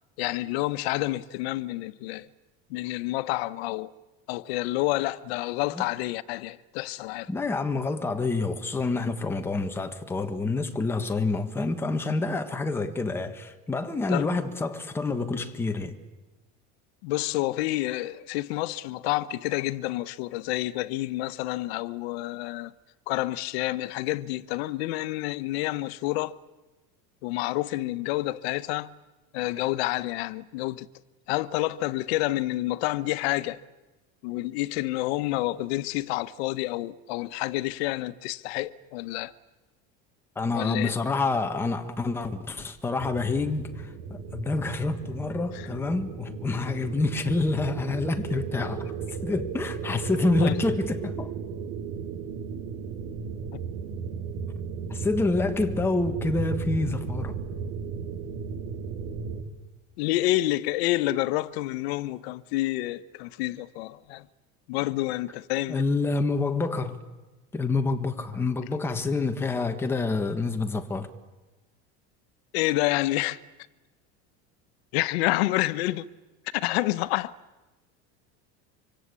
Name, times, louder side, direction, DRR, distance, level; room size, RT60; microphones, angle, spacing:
voice 1, 0.2-2.3 2.7-3.9 4.3-7.3 14.1-14.3 17.0-22.7 23.1-26.3 27.2-28.9 29.3-30.9 31.3-33.6 34.2-39.3 40.5-40.9 45.5-45.7 50.4-50.6 53.5-53.6 60.0-64.3 64.7-65.8 72.5-73.4 74.9-76.1 76.5-77.3, left 17 dB, 85° left, 1.1 m, -28 dB
voice 2, 7.3-15.9 40.3-48.9 49.2-51.3 54.9-57.4 65.7-67.0 67.5-71.1, left 3 dB, 10° left, 1.4 m, -27 dB
sound 1, 43.0-59.4, right 5 dB, 70° right, 3.0 m, -35 dB
26.0 x 25.5 x 8.4 m
cardioid pair, 180°, 30 cm